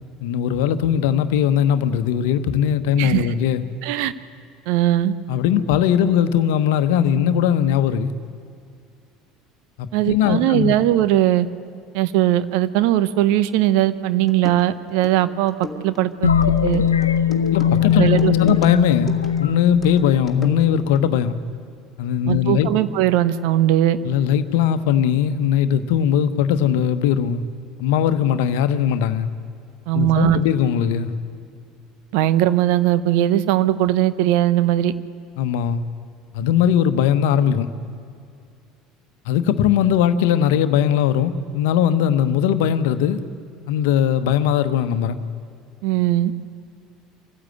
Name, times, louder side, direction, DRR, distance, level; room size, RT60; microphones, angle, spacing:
voice 1, 0.2-3.6 5.3-8.1 9.8-10.7 17.5-21.4 22.0-22.7 24.0-27.4 27.8-29.3 29.9-31.1 35.4-35.8 36.3-37.7 39.3-43.2 43.7-45.2, left 9 dB, 65° left, 10 dB, 1.0 m, -19 dB
voice 2, 3.0-3.3 3.8-4.1 4.7-5.1 9.9-11.5 11.9-15.6 15.8-16.8 17.9-18.3 22.3-24.0 29.9-30.4 32.1-34.9 45.8-46.3, right 13 dB, 60° right, 14 dB, 0.8 m, -19 dB
sound 1, 13.9-14.0 14.3-21.0, left 4 dB, 25° left, 2.2 m, -38 dB
sound 2, 16.2-20.9, left 8 dB, 85° left, 0.6 m, -20 dB
26.0 x 15.0 x 8.0 m, 2.4 s
figure-of-eight pair, 65°, 0 cm